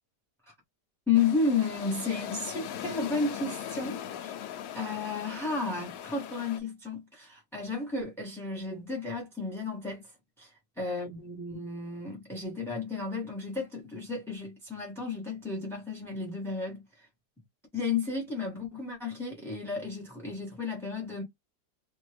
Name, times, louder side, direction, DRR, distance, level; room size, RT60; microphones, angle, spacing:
sound 1, 1.1-6.6, left 10 dB, 65° left, 0.9 m, -40 dB
voice 1, 1.1-4.3 4.7-10.1 10.4-17.1 17.7-21.2, left 4 dB, 5° left, 0.4 m, -33 dB
2.8 x 2.4 x 3.2 m
omnidirectional pair, 1.8 m